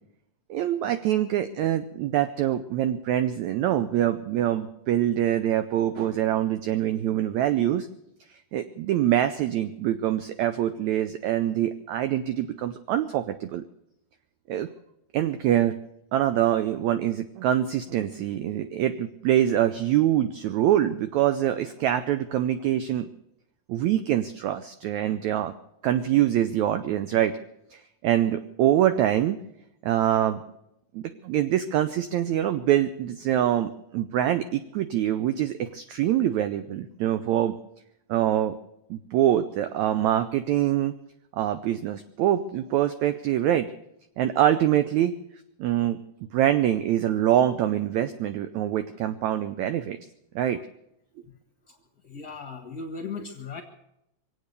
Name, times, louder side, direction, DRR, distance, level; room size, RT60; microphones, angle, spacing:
voice 1, 0.5-7.9 8.5-13.6 14.5-14.7 15.1-15.8 16.1-23.1 23.7-25.5 25.8-27.3 27.7-29.4 29.8-30.4 30.9-37.5 38.1-38.6 38.9-40.9 41.3-43.7 44.2-45.1 45.6-46.0 46.3-50.0 50.3-50.6, right 11 dB, 80° right, 10 dB, 1.6 m, -24 dB
voice 2, 52.0-53.6, left 4 dB, 45° left, 1 dB, 1.2 m, -37 dB
24.5 x 8.6 x 6.7 m, 0.80 s
omnidirectional pair, 4.1 m